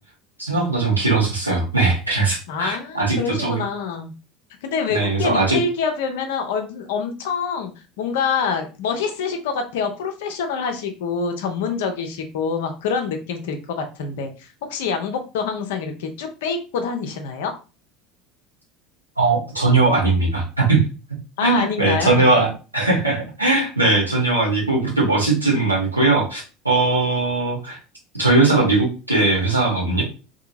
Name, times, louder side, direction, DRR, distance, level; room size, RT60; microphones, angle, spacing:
voice 1, 0.4-3.6 4.9-5.6 19.2-20.8 21.4-27.8 28.2-30.0, right 3 dB, 90° right, -4 dB, 1.0 m, -19 dB
voice 2, 2.5-4.1 4.6-7.7 8.0-17.5 21.4-22.4, left 5 dB, 65° left, 6 dB, 0.5 m, -26 dB
2.8 x 2.6 x 2.6 m, 0.33 s
figure-of-eight pair, 70°, 0 cm